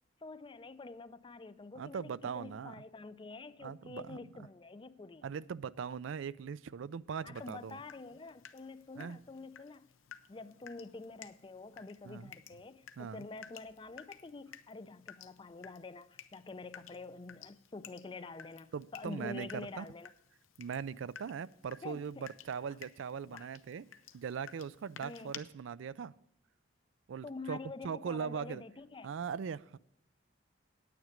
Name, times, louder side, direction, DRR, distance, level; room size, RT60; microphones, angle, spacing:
voice 1, 0.2-5.3 7.2-9.9 10.3-20.1 21.8-22.2 23.3-23.5 25.0-25.3 27.2-29.1, left 3 dB, 25° left, 0.4 m, -47 dB
voice 2, 1.8-2.8 3.6-4.2 5.2-7.8 9.0-9.2 12.0-12.3 13.0-13.3 18.7-19.9 20.6-23.9 24.1-26.1 27.1-27.6 27.8-28.6 29.0-29.8, right 6 dB, 75° right, 0.4 m, -40 dB
Water tap faucet / Drip, 7.4-25.4, left 8 dB, 85° left, 0.7 m, -55 dB
9.3 x 9.2 x 5.0 m
head